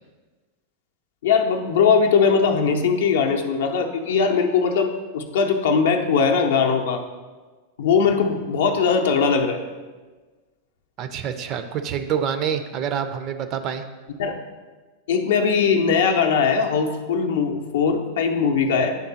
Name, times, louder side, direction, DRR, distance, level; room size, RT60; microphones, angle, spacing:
voice 1, 1.2-7.0 7.8-9.6 14.2-14.4 15.1-19.0, left 5 dB, 60° left, 4 dB, 0.5 m, -20 dB
voice 2, 11.0-13.9, right 8 dB, 35° right, 9 dB, 0.4 m, -27 dB
9.7 x 3.5 x 2.7 m, 1.3 s
figure-of-eight pair, 90°, 0 cm